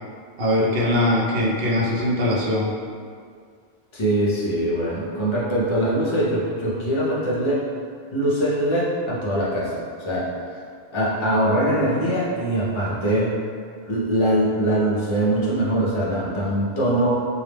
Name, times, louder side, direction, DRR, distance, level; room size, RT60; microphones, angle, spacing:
voice 1, 0.4-2.7, left 1 dB, 70° right, -5 dB, 0.8 m, -21 dB
voice 2, 3.9-7.6 8.1-10.3 10.9-13.3 13.9-17.1, right 1 dB, 40° left, -6 dB, 0.4 m, -22 dB
2.3 x 2.0 x 3.2 m, 2.2 s
omnidirectional pair, 1.1 m